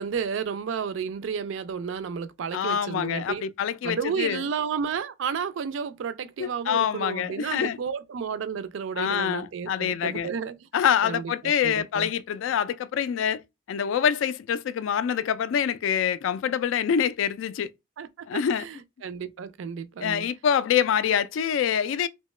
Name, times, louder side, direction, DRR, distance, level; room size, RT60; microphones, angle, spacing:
voice 1, 0.0-3.4 3.8-10.7 11.0-12.1 18.0-20.3, right 6 dB, 80° right, 0.4 m, -32 dB
voice 2, 2.5-4.4 6.4-7.8 9.0-10.3 10.7-13.4 13.7-17.7 18.3-18.7 20.0-22.1, left 8 dB, 85° left, 0.3 m, -25 dB
2.8 x 2.2 x 3.1 m
head